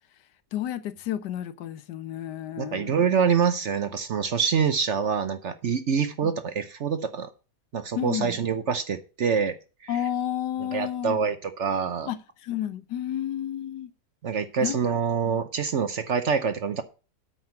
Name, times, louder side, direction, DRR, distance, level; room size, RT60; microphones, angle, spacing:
voice 1, 0.5-3.0 6.2-6.3 8.0-8.4 9.9-11.2 12.1-13.9 14.6-14.8 15.2-15.4, left 11 dB, 80° left, 1.4 m, -31 dB
voice 2, 2.6-7.3 7.7-9.6 9.8-10.0 10.7-12.1 14.2-16.8, right 6 dB, 55° right, 0.9 m, -26 dB
8.6 x 6.1 x 7.0 m
omnidirectional pair, 1.8 m